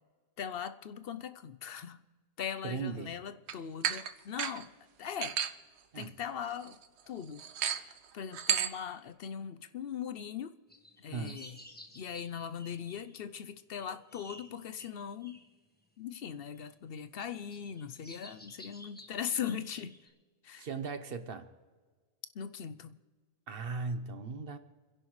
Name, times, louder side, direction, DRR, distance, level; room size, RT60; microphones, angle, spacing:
voice 1, 0.4-2.0 2.4-4.7 5.0-5.4 5.9-6.8 7.1-10.5 11.0-11.6 12.0-15.4 16.0-20.0 20.4-20.7 22.3-23.0, left 8 dB, 65° left, 0.8 m, -40 dB
voice 2, 2.6-3.2 5.9-6.1 11.1-11.4 20.6-21.5 23.5-24.6, right 4 dB, 60° right, 1.2 m, -38 dB
sound 1, 3.5-3.6 3.8-4.1 4.4-4.6 5.2-5.5 6.0-6.1 6.4-6.7 7.4-7.9 8.3-8.7, right 8 dB, 85° right, 1.0 m, -31 dB
sound 2, 10.7-13.3 13.7-15.5 16.5-16.6 17.2-20.1, left 1 dB, 10° left, 1.4 m, -53 dB
28.5 x 11.0 x 3.2 m
omnidirectional pair, 1.1 m